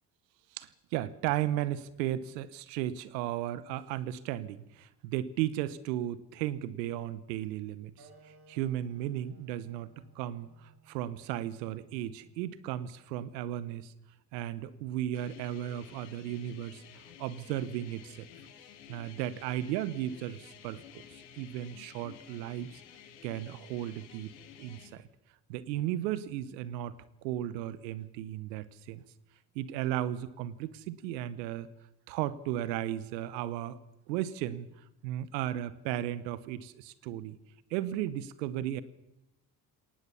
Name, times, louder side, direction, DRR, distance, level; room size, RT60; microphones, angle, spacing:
voice 1, 0.6-9.9 10.1-13.9 14.3-16.8 17.2-18.3 18.9-20.8 21.4-22.8 23.2-24.3 24.6-25.0 25.5-26.9 27.2-29.0 29.5-31.7 32.1-33.8 34.1-34.7 35.0-37.4 37.7-38.8, right 12 dB, 85° right, 17 dB, 1.0 m, -35 dB
Wind instrument woodwind instrument, 8.0-13.1, right 4 dB, 50° right, 6.4 m, -61 dB
sound 1, 15.1-24.9, left 9 dB, 90° left, 1.7 m, -53 dB
21.5 x 18.5 x 6.9 m, 0.91 s
hypercardioid pair, 50°, 49 cm